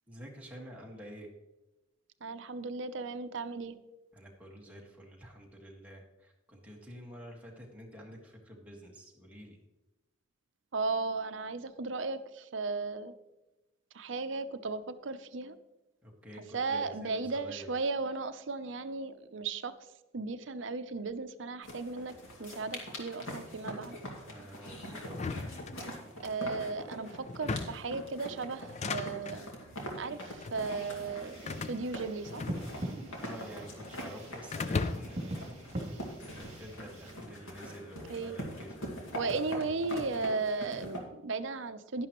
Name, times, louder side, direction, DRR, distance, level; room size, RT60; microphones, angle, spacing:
voice 1, 0.1-1.3 4.1-9.6 16.0-17.7 24.2-25.3 33.1-36.0 36.2-39.3, equal, 5° right, -2 dB, 1.7 m, -49 dB
voice 2, 2.2-3.7 10.7-13.1 13.9-15.6 16.5-19.7 20.1-22.1 22.4-24.0 26.2-29.5 30.0-31.4 31.6-32.5 38.1-38.4 39.1-42.1, right 3 dB, 65° right, 10 dB, 0.6 m, -35 dB
sound 1, 21.6-41.0, equal, 85° left, 2.2 m, -44 dB
sound 2, 25.1-26.3 27.3-27.9 28.6-29.4 30.2-30.6 31.5-33.0 33.2-34.0 34.5-35.3, left 4 dB, 35° left, 0.4 m, -37 dB
sound 3, 30.5-37.1, right 1 dB, 30° right, 2.7 m, -43 dB
11.0 x 11.0 x 3.1 m, 1.0 s
head